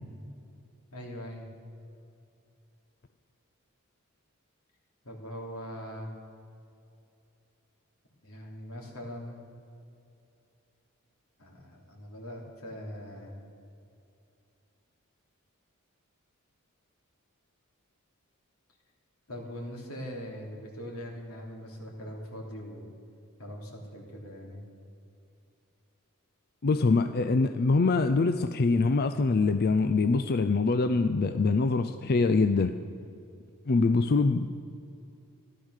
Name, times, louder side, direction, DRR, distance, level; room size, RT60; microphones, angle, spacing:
voice 1, 0.9-1.5 5.0-6.1 8.2-9.4 11.4-13.3 19.3-22.9 23.4-24.6, equal, 85° left, 0 dB, 3.1 m, -41 dB
voice 2, 26.6-32.7 33.7-34.5, left 3 dB, 45° left, 9 dB, 0.4 m, -24 dB
14.0 x 12.5 x 6.5 m, 2.6 s
head